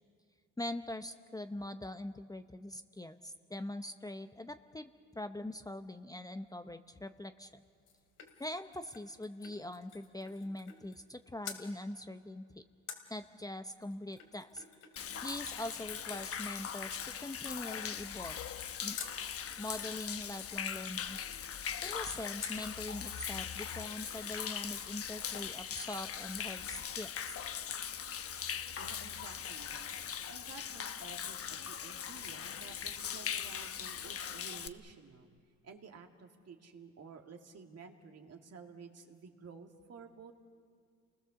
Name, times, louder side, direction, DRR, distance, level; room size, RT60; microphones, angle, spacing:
voice 1, 0.6-7.6 8.4-12.4 13.1-14.6 15.2-18.4 18.8-19.0 19.6-21.2 21.8-27.3, left 1 dB, 10° left, 8 dB, 0.8 m, -42 dB
sound 1, 7.5-11.1 11.4-11.7 12.9-19.2 22.4-22.7 23.2-23.3 23.5-24.5 24.8-24.9, left 7 dB, 75° left, 2.9 m, -51 dB
Human voice / Rain / Stream, 15.0-34.7, left 8 dB, 50° left, 0.9 m, -40 dB
voice 2, 28.8-35.3 35.6-40.4, right 5 dB, 55° right, 4 dB, 2.3 m, -53 dB
29.0 x 20.5 x 7.0 m, 2.3 s
cardioid pair, 90°, 30 cm